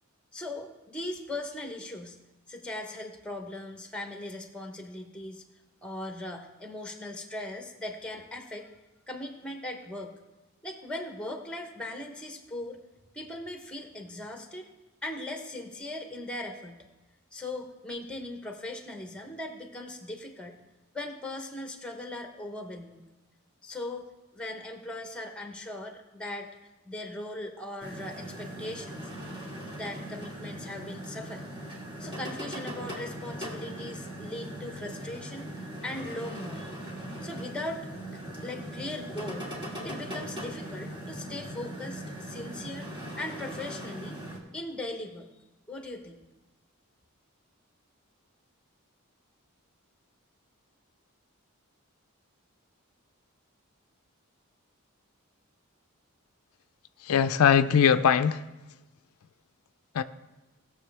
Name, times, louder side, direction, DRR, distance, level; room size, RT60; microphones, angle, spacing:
voice 1, 0.3-2.2 2.5-5.4 5.8-8.7 9.1-10.1 10.6-12.8 13.1-14.7 15.0-16.9 17.3-20.6 20.9-23.0 23.6-24.1 24.3-26.5 26.8-29.1 29.8-31.5 32.0-35.5 35.8-36.7 37.2-37.8 38.4-39.5 39.8-42.9 43.2-44.2 44.5-45.3 45.7-46.2, left 1 dB, 5° left, 4 dB, 1.0 m, -39 dB
sound 1, 27.8-44.4, right 1 dB, 20° right, 1.7 m, -40 dB
voice 2, 57.0-58.5 59.9-60.0, left 7 dB, 90° left, 12 dB, 0.4 m, -21 dB
18.0 x 6.9 x 3.4 m, 1.1 s
head